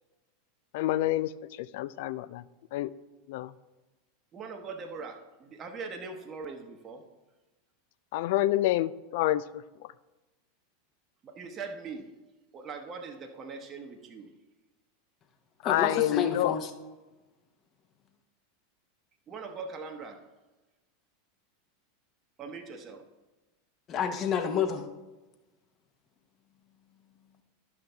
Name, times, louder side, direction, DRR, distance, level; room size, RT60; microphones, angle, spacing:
voice 1, 0.7-2.4 2.7-2.9 3.3-3.5 8.1-9.9 15.6-16.5, left 14 dB, 60° left, 16 dB, 0.3 m, -28 dB
voice 2, 4.3-7.0 11.2-12.1 12.5-14.3 19.3-20.2 22.4-23.0, right 4 dB, 30° right, 4 dB, 1.0 m, -41 dB
voice 3, 15.6-16.7 23.9-24.9, left 7 dB, 35° left, 7 dB, 1.0 m, -29 dB
11.5 x 5.9 x 3.4 m, 1.1 s
figure-of-eight pair, 85°, 0 cm